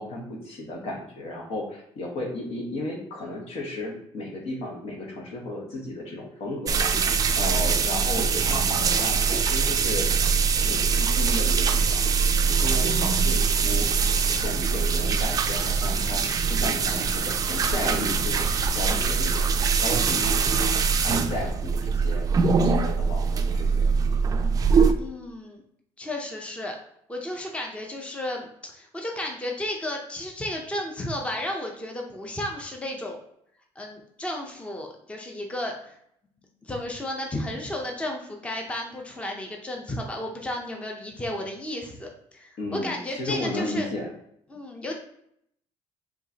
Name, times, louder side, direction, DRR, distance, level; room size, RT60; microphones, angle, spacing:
voice 1, 0.0-6.9 7.3-10.1 10.6-12.0 12.5-20.7 21.0-22.3 22.6-23.9 42.6-44.1, left 1 dB, 65° left, 0 dB, 1.2 m, -34 dB
sound 1, 6.7-24.9, right 5 dB, 35° right, 0.4 m, -23 dB
voice 2, 25.0-25.6 26.0-26.8 27.1-33.2 33.8-36.0 36.6-43.9 44.5-45.0, left 1 dB, 10° left, 1 dB, 0.6 m, -33 dB
4.6 x 3.0 x 2.8 m, 0.71 s
cardioid pair, 120°, 11 cm